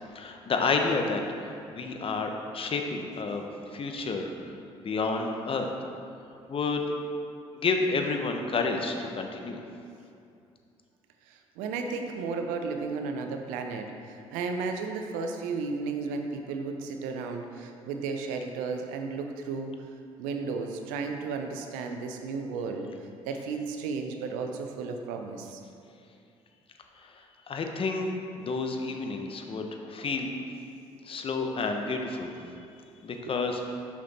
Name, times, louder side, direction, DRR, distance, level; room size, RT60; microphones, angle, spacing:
voice 1, 0.1-3.5 3.7-4.3 4.8-5.7 6.5-6.8 7.5-9.6 27.5-30.3 31.1-32.3 33.0-33.6, left 4 dB, 45° left, 4 dB, 0.9 m, -30 dB
voice 2, 11.3-19.7 20.2-22.9 23.2-25.6 32.4-32.5 33.1-33.3, right 4 dB, 80° right, 4 dB, 0.6 m, -34 dB
6.1 x 5.8 x 4.2 m, 2.5 s
hypercardioid pair, 65°, 14 cm